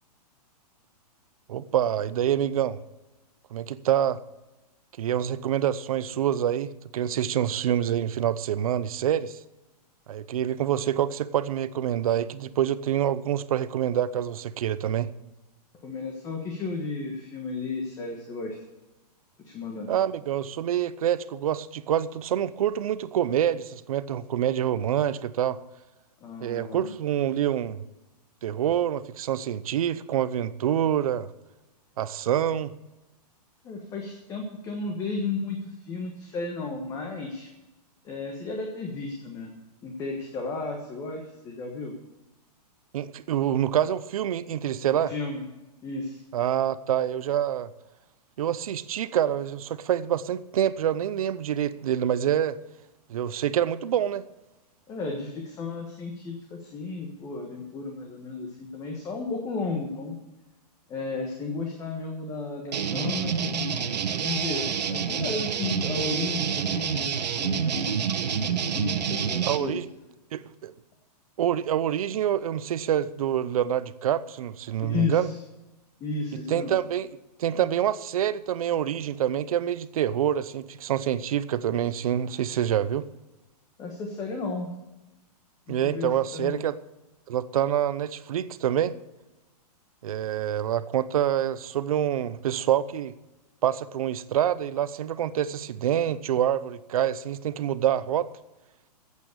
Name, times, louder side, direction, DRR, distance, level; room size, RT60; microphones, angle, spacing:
voice 1, 1.5-2.8 3.5-4.2 5.0-9.4 10.1-15.1 19.9-25.6 26.4-27.8 28.4-31.3 32.0-32.7 42.9-45.1 46.3-47.7 48.4-52.6 53.1-54.2 69.4-69.9 70.3-70.7 71.4-75.3 76.5-77.1 77.4-83.1 85.7-86.8 87.3-89.0 90.0-93.1 93.6-98.3, right 10 dB, 60° right, 0.8 m, -26 dB
voice 2, 15.8-18.5 19.4-19.9 26.2-26.9 33.6-37.5 38.0-39.5 39.8-41.9 45.1-45.4 45.8-46.2 54.9-60.1 60.9-63.9 64.2-69.8 74.8-75.3 76.0-76.7 83.8-84.7 85.7-86.6, left 3 dB, 15° left, 1.4 m, -33 dB
sound 1, 62.7-69.6, right 7 dB, 85° right, 1.4 m, -28 dB
14.0 x 8.4 x 6.7 m
hypercardioid pair, 165°, 21 cm